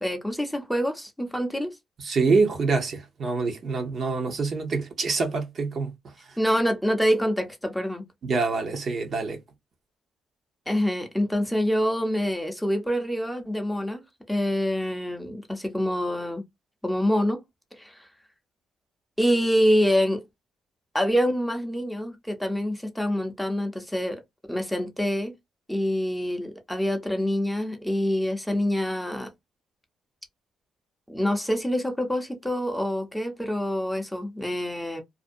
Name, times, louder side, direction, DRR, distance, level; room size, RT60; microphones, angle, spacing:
voice 1, 0.0-1.7 6.4-8.0 10.7-14.0 14.3-16.4 16.8-17.4 17.8-18.1 19.2-20.2 20.9-24.2 24.5-25.3 25.7-29.3 31.1-35.0, equal, 5° left, 0.6 m, -26 dB
voice 2, 2.0-6.4 8.2-9.4, right 4 dB, 50° right, 0.8 m, -26 dB
2.5 x 2.1 x 2.5 m
cardioid pair, 90°, 0 cm